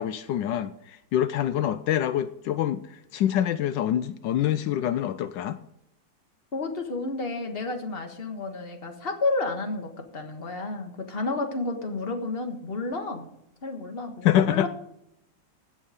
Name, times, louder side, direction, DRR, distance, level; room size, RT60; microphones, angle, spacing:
voice 1, 0.0-5.6 14.2-14.7, left 11 dB, 80° left, 13 dB, 1.2 m, -26 dB
voice 2, 6.5-13.3 13.6-14.7, left 3 dB, 35° left, 5 dB, 1.7 m, -31 dB
16.5 x 6.4 x 5.1 m, 0.80 s
omnidirectional pair, 2.0 m